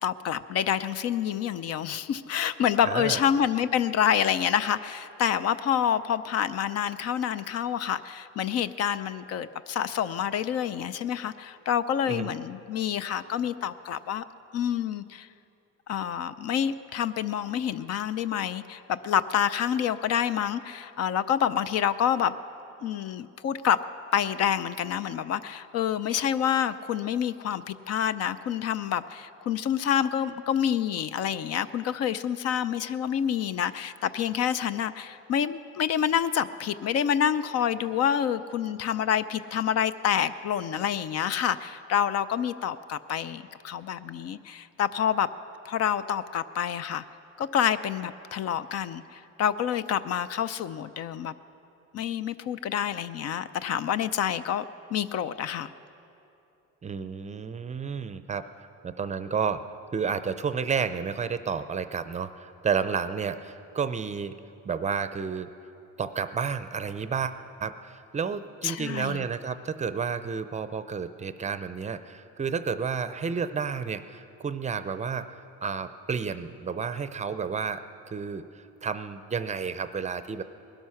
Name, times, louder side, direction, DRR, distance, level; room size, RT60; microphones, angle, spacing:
voice 1, 0.0-14.2 14.5-15.3 15.9-22.4 22.8-23.8 24.1-45.3 45.6-47.0 47.4-51.3 51.9-54.6 54.9-55.7 68.6-69.2, left 9 dB, 55° left, 14 dB, 0.5 m, -27 dB
voice 2, 2.8-3.2 12.1-12.3 56.8-58.4 58.8-59.6 59.9-64.3 64.7-65.5 66.0-67.3 67.6-75.3 75.6-77.8 78.1-80.4, right 6 dB, 25° right, 11 dB, 0.5 m, -31 dB
20.0 x 12.5 x 5.7 m, 2.8 s
cardioid pair, 125°, 30 cm